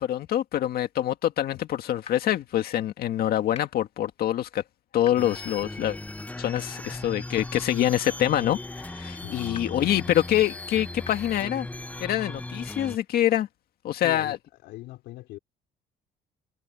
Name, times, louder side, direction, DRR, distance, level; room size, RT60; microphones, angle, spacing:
voice 1, 0.0-4.6 4.9-6.0 6.4-8.6 8.8-11.7 12.0-13.5 13.8-14.4, left 12 dB, 65° left, 1.9 m, -25 dB
sound 1, 2.0-2.1 3.5-3.6 5.0-5.1 6.5-6.6 8.0-8.1 9.5-9.6 11.0-11.1, left 6 dB, 40° left, 2.7 m, -40 dB
sound 2, 5.2-13.0, left 2 dB, 10° left, 0.8 m, -37 dB
voice 2, 9.2-9.6 13.9-14.4 14.6-15.4, left 17 dB, 85° left, 3.4 m, -41 dB
cardioid pair, 110°, 17 cm